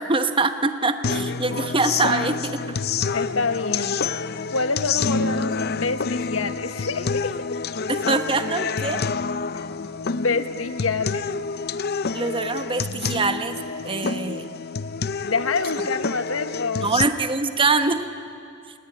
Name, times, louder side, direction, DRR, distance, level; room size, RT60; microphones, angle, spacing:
voice 1, 0.0-2.8 7.9-9.0 12.1-13.6 13.8-14.5 16.8-18.0, right 3 dB, 25° right, 8 dB, 1.0 m, -24 dB
sound 1, 1.0-17.0, left 5 dB, 50° left, 0.6 m, -28 dB
voice 2, 3.1-4.0 4.5-7.4 10.1-11.3 15.2-16.9, left 4 dB, 85° left, 10 dB, 1.3 m, -26 dB
29.5 x 19.5 x 9.9 m, 2.4 s
head